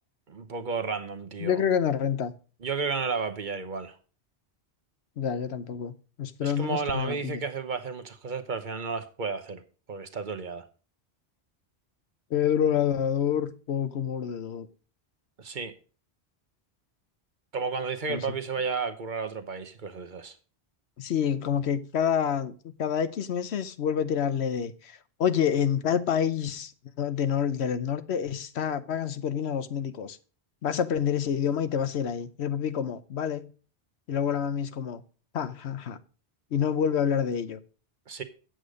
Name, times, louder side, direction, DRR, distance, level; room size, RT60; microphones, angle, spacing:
voice 1, 0.3-1.6 2.6-4.0 6.4-9.6 9.9-10.6 15.4-15.7 17.5-20.3 38.1-38.2, right 5 dB, 50° right, 1.0 m, -32 dB
voice 2, 1.4-2.3 5.2-7.4 12.3-14.7 18.1-18.2 21.0-22.5 22.8-26.7 27.0-30.2 30.6-33.5 34.1-35.0 35.3-36.0 36.5-37.6, left 8 dB, 80° left, 1.0 m, -28 dB
8.2 x 7.7 x 5.0 m
omnidirectional pair, 1.1 m